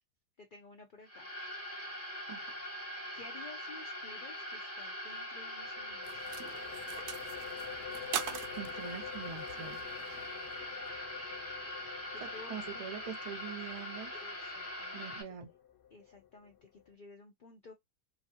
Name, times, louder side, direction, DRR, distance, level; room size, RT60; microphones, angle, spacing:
voice 1, 0.4-1.3 3.1-6.3 10.1-10.3 12.1-13.1 14.1-15.0 15.3-15.4 15.9-17.7, left 3 dB, 85° left, 0.4 m, -54 dB
sound 1, 1.0-15.2, left 1 dB, 15° left, 0.5 m, -42 dB
sound 2, 5.6-16.9, left 10 dB, 55° left, 0.8 m, -50 dB
sound 3, 6.0-10.8, right 9 dB, 75° right, 1.1 m, -43 dB
voice 2, 8.6-9.8 12.2-14.1 14.9-15.5, right 8 dB, 40° right, 0.5 m, -43 dB
3.1 x 2.5 x 2.6 m
omnidirectional pair, 1.7 m